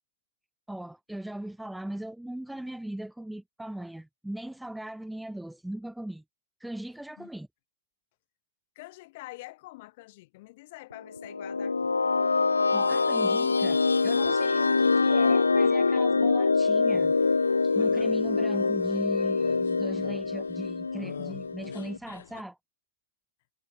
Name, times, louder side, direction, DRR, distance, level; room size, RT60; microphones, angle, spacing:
voice 1, 0.7-6.2 6.6-7.5 12.7-17.1 17.6-22.6, right 1 dB, 5° right, 1.7 m, -39 dB
voice 2, 8.7-12.0, left 20 dB, 50° left, 4.5 m, -46 dB
sound 1, 11.1-22.0, left 4 dB, 90° left, 0.3 m, -25 dB
sound 2, 16.9-22.4, left 9 dB, 70° left, 0.9 m, -47 dB
hypercardioid pair, 110°, 0 cm